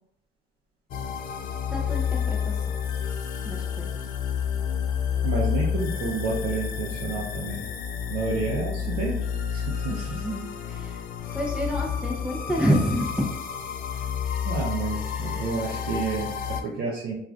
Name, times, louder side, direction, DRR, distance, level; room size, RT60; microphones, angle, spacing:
sound 1, 0.9-16.6, left 7 dB, 60° left, 0.4 m, -30 dB
voice 1, 1.7-2.8 3.4-4.1 9.9-13.3 15.2-15.5, equal, 5° right, -2 dB, 0.5 m, -29 dB
voice 2, 5.2-7.6 8.1-9.1 9.5-9.9 14.4-17.1, right 4 dB, 65° right, -5 dB, 0.6 m, -30 dB
3.0 x 2.4 x 2.4 m, 0.76 s
cardioid pair, 110°, 17 cm